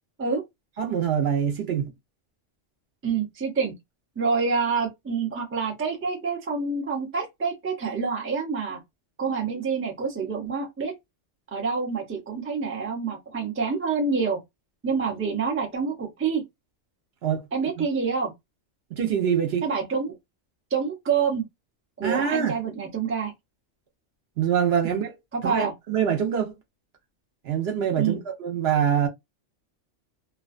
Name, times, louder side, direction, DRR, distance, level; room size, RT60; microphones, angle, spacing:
voice 1, 0.8-1.9 17.2-17.4 17.8-17.9 18.9-19.7 22.0-22.6 24.4-25.1 25.4-26.5 27.4-29.1, right 8 dB, 65° right, 0.8 m, -24 dB
voice 2, 3.0-3.7 4.2-8.8 9.2-10.9 11.5-14.4 14.8-16.4 17.5-18.3 19.6-20.2 20.7-21.4 22.0-23.3 24.8-25.0 25.3-25.7 28.0-28.2, right 5 dB, 15° right, 0.4 m, -27 dB
2.5 x 2.2 x 2.4 m
omnidirectional pair, 1.2 m